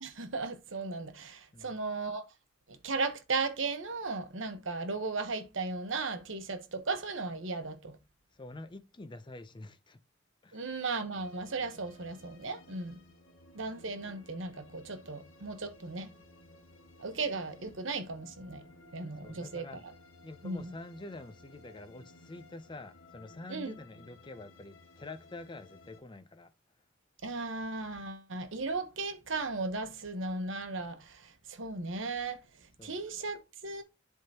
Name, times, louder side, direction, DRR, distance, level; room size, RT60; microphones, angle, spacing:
voice 1, 0.0-2.3 2.7-8.0 10.5-13.0 13.5-16.1 17.0-18.6 18.9-19.9 20.4-20.7 23.5-23.8 27.2-32.4 32.8-33.8, right 3 dB, 70° right, 1.0 m, -36 dB
voice 2, 8.3-10.0 10.4-10.7 19.2-19.8 20.2-26.5 32.8-33.0, left 2 dB, 25° left, 0.5 m, -47 dB
sound 1, 11.1-26.0, left 2 dB, 90° left, 1.4 m, -57 dB
11.0 x 3.7 x 2.8 m
head